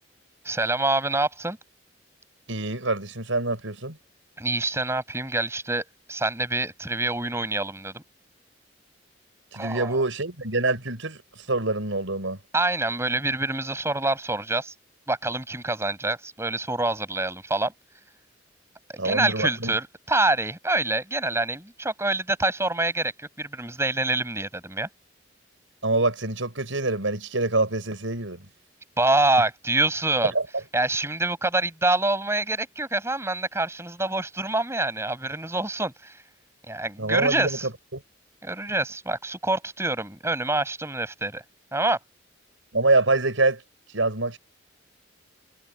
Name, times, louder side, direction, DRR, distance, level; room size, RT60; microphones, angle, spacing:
voice 1, 0.4-1.6 4.4-8.0 9.5-10.0 12.5-14.7 15.1-17.7 18.9-24.9 29.0-30.3 30.7-36.2 36.7-37.7 38.4-41.4 41.7-42.0, right 2 dB, 15° right, 6.5 m, -26 dB
voice 2, 2.5-4.0 9.5-11.2 11.5-12.4 19.0-19.7 25.8-28.5 30.3-30.4 37.0-38.0 42.7-43.6 43.9-44.4, right 2 dB, 90° right, 5.5 m, -25 dB
head